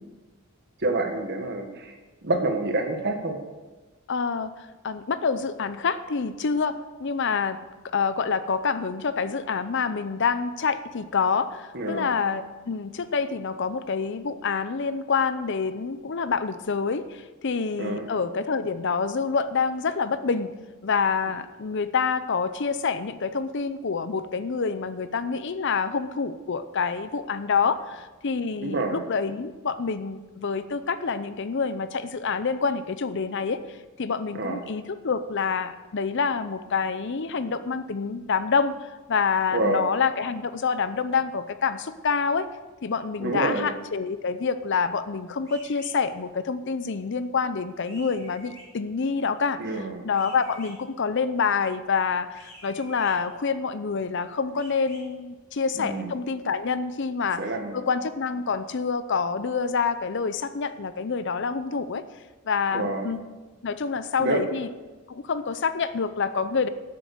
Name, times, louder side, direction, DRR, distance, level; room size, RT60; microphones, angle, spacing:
voice 1, 0.8-1.9 2.2-3.4 11.7-12.1 17.8-18.1 28.6-29.0 34.3-34.6 39.5-39.8 43.2-43.7 49.6-50.0 55.7-56.1 57.4-57.8 62.7-63.1 64.2-64.4, right 2 dB, 50° right, 4 dB, 1.6 m, -27 dB
voice 2, 4.1-20.5 20.8-38.7 39.1-42.5 42.8-49.6 50.0-57.4 57.7-62.0 62.4-63.2 63.6-64.7 65.1-66.7, left 5 dB, 55° left, 12 dB, 0.6 m, -27 dB
sound 1, 45.4-45.9 47.8-48.6 50.1-50.7 52.3-53.1 54.5-55.0, equal, 15° left, 5.1 m, -47 dB
12.5 x 7.8 x 6.5 m, 1.2 s
head